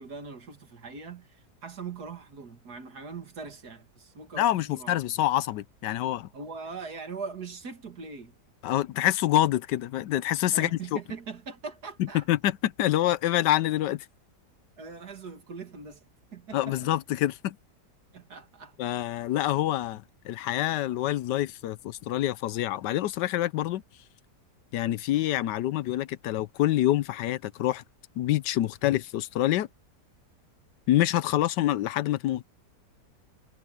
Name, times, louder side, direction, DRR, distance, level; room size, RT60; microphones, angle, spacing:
voice 1, 0.0-5.0 6.3-8.3 10.5-12.3 14.8-16.0 16.3-16.9 18.1-19.0, right 5 dB, 65° right, 2.5 m, -41 dB
voice 2, 4.4-6.3 8.6-10.8 12.0-14.1 16.5-17.6 18.8-23.8 24.7-27.8 28.2-29.7 30.9-32.4, left 14 dB, 80° left, 1.3 m, -26 dB
omnidirectional pair, 1.8 m